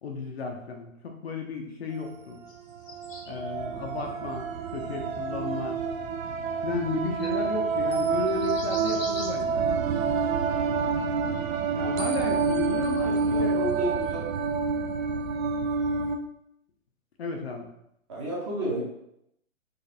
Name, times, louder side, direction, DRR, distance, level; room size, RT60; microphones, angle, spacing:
voice 1, 0.0-2.4 3.2-5.8 6.6-9.7 11.7-13.8 17.2-17.7, left 4 dB, 50° left, 2 dB, 0.5 m, -34 dB
sound 1, 2.0-2.1 2.7-16.2, right 5 dB, 75° right, 0.5 m, -28 dB
sound 2, 2.5-3.6 4.8-5.0 5.5-5.6 6.9-7.0 7.2-7.6 7.9-8.0 8.3-9.3, left 3 dB, 70° left, 1.0 m, -42 dB
voice 2, 13.0-14.2 18.1-18.8, equal, 20° right, -4 dB, 0.7 m, -31 dB
4.0 x 2.5 x 2.6 m, 0.78 s
hypercardioid pair, 140°, 41 cm